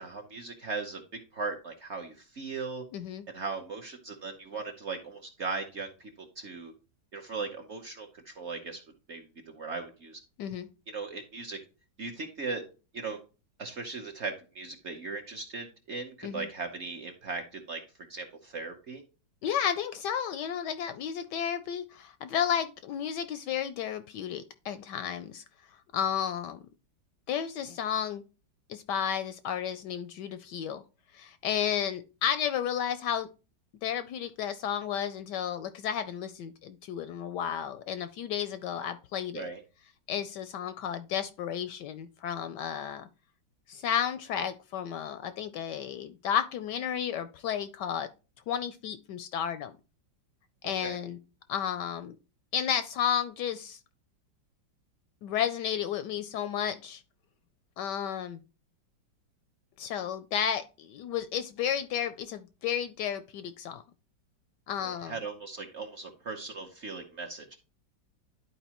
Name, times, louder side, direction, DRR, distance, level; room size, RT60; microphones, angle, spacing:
voice 1, 0.0-2.8 3.3-6.7 7.1-8.8 9.1-10.2 10.9-11.6 12.0-12.6 12.9-13.2 13.6-17.8 18.1-19.0 39.3-39.6 50.8-51.0 64.8-67.6, right 4 dB, 45° right, 3 dB, 1.0 m, -38 dB
voice 2, 2.9-3.2 10.4-10.7 16.2-16.5 19.4-25.4 25.9-26.6 27.3-28.2 28.7-30.8 31.1-33.3 33.8-39.5 40.1-43.1 43.7-48.1 48.5-49.7 50.6-51.2 51.5-52.2 52.5-53.8 55.2-57.0 57.8-58.4 59.8-63.8 64.7-65.2, left 9 dB, 75° left, 12 dB, 1.0 m, -32 dB
11.0 x 4.5 x 2.9 m, 0.32 s
omnidirectional pair, 2.1 m